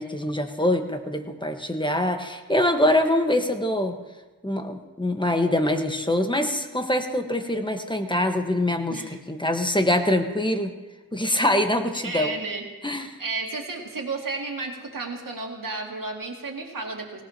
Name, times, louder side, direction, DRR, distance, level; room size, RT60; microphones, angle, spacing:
voice 1, 0.0-3.9 4.4-10.7 11.1-12.3 12.8-13.1, left 1 dB, 15° left, 6 dB, 1.3 m, -24 dB
voice 2, 12.0-12.7 13.2-17.2, right 3 dB, 65° right, 1 dB, 2.2 m, -32 dB
18.5 x 17.0 x 2.9 m, 1.2 s
cardioid pair, 55°, 36 cm